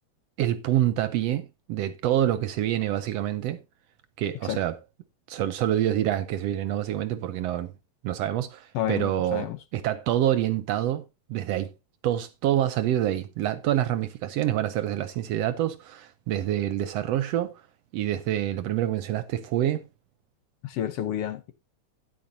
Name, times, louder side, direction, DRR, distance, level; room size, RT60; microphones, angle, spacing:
voice 1, 0.4-3.6 4.2-4.7 5.3-7.7 8.0-11.0 11.3-11.7 12.0-17.5 17.9-19.8, right 12 dB, 75° right, 1.6 m, -26 dB
voice 2, 8.7-9.6 20.6-21.5, left 11 dB, 65° left, 1.7 m, -30 dB
12.5 x 10.0 x 2.7 m
omnidirectional pair, 3.3 m